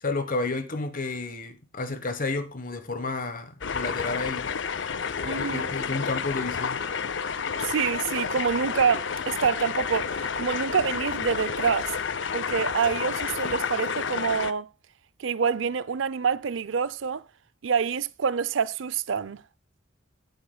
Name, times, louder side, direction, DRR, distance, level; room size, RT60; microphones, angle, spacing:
voice 1, 0.0-4.5 5.2-6.8, left 3 dB, 45° left, 1.2 m, -31 dB
sound 1, 3.6-14.5, left 6 dB, 65° left, 0.6 m, -30 dB
voice 2, 5.2-5.7 7.6-12.0 12.3-14.7 15.2-17.2 17.6-19.4, right 6 dB, 75° right, 0.5 m, -27 dB
16.5 x 8.1 x 2.2 m
head